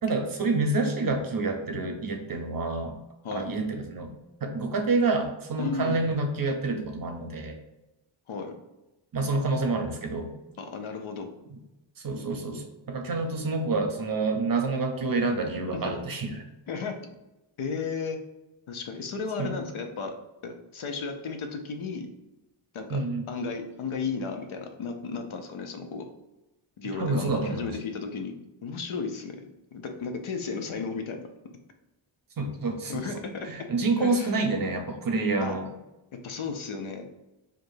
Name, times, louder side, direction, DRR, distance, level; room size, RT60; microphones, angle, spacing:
voice 1, 0.0-3.0 3.3-4.1 4.4-7.5 9.1-10.3 12.0-16.5 19.4-19.6 22.9-23.2 26.9-27.8 32.4-33.0 33.4-35.7, right 3 dB, 45° right, 5 dB, 0.6 m, -28 dB
voice 2, 5.6-6.0 8.3-8.5 10.6-11.3 15.7-15.9 16.7-17.0 17.6-18.2 18.7-20.2 20.4-22.1 22.7-26.0 26.8-29.4 29.7-31.2 32.9-33.5 34.0-34.3 35.4-35.5 36.2-37.0, left 4 dB, 75° left, 5 dB, 0.7 m, -34 dB
4.6 x 2.6 x 2.6 m, 0.97 s
wide cardioid pair, 140°, 49 cm